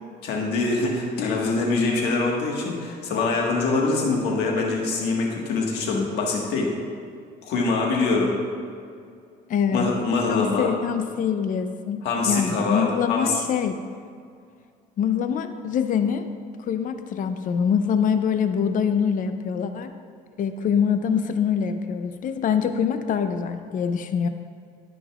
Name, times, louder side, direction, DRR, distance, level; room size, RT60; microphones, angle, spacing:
voice 1, 0.2-6.7 7.4-8.3 9.7-10.7 12.0-13.3, left 3 dB, 85° left, -1 dB, 1.5 m, -24 dB
voice 2, 9.5-9.9 10.3-13.8 15.0-16.3 16.6-19.9 20.4-24.3, left 7 dB, 50° left, 9 dB, 0.5 m, -24 dB
15.0 x 5.3 x 2.4 m, 2.2 s
cardioid pair, 110°, 17 cm